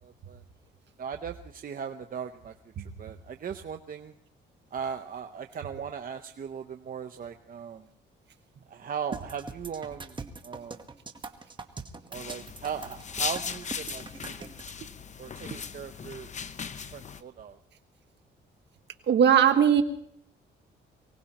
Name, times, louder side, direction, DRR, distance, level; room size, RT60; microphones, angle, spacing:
voice 1, 0.0-0.4 1.0-4.1 4.7-7.8 8.7-10.2 10.4-10.8 12.1-14.5 15.2-16.3 16.9-17.6, right 7 dB, 45° right, 6 dB, 0.8 m, -38 dB
sound 1, 9.1-14.7, right 4 dB, 25° right, 1.2 m, -42 dB
sound 2, 12.1-17.2, left 6 dB, 35° left, 0.7 m, -38 dB
voice 2, 19.1-19.8, right 8 dB, 60° right, 7 dB, 1.5 m, -19 dB
24.0 x 18.0 x 3.0 m, 0.67 s
cardioid pair, 90°, 20 cm